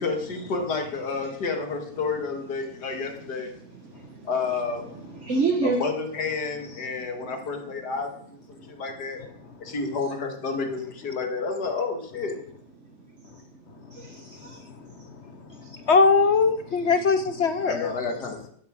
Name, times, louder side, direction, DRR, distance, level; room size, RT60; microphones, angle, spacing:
voice 1, 0.0-3.5 4.2-4.9 5.6-9.2 9.6-12.4 17.6-18.5, left 4 dB, 90° left, 4 dB, 2.3 m, -30 dB
voice 2, 2.6-5.8 6.8-7.9 8.5-8.9 9.2-9.7 12.8-15.9 16.7-16.9, right 4 dB, 50° right, 2 dB, 1.5 m, -34 dB
voice 3, 15.9-17.9, left 4 dB, 55° left, 10 dB, 0.8 m, -20 dB
12.5 x 7.3 x 6.2 m, 0.63 s
omnidirectional pair, 1.7 m